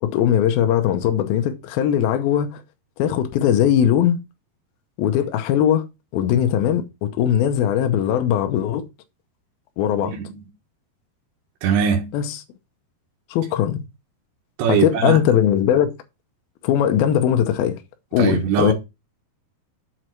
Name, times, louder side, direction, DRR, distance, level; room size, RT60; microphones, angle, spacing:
voice 1, 0.0-2.6 3.0-4.2 5.0-5.8 6.1-8.8 9.8-10.1 12.1-12.4 13.3-13.8 14.7-15.9 16.6-17.8 18.1-18.7, left 10 dB, 75° left, 2.5 m, -19 dB
voice 2, 10.0-10.4 11.6-12.1 14.6-15.2 18.2-18.7, right 7 dB, 85° right, 3.4 m, -21 dB
7.3 x 4.8 x 4.4 m
omnidirectional pair, 4.8 m